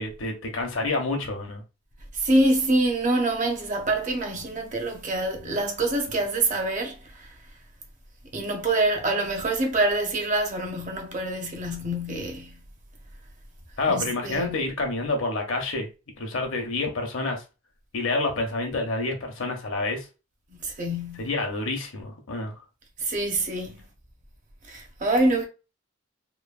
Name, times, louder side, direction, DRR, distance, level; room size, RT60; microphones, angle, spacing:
voice 1, 0.0-1.6 13.8-15.9 16.2-17.4 17.9-20.0 21.2-22.5, left 2 dB, 70° left, 0.8 m, -28 dB
voice 2, 2.1-7.3 8.3-12.6 13.9-14.6 20.6-21.3 23.0-23.8 24.7-25.5, right 2 dB, 40° right, 0.6 m, -25 dB
3.0 x 2.0 x 2.4 m
head